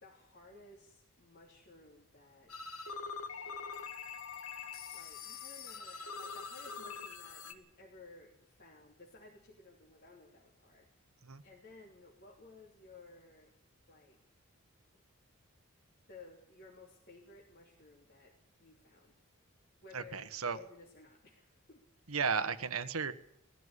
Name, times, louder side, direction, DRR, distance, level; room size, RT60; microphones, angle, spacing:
voice 1, 0.0-2.6 4.9-11.1 11.4-13.5 13.9-14.2 16.1-19.1 19.8-21.8, left 3 dB, 45° left, -2 dB, 3.1 m, -57 dB
Answer them phones, 2.5-7.5, left 5 dB, 80° left, 1.9 m, -44 dB
voice 2, 19.9-20.6 22.1-23.1, right 5 dB, 75° right, 12 dB, 1.3 m, -34 dB
19.5 x 15.0 x 9.8 m, 0.72 s
head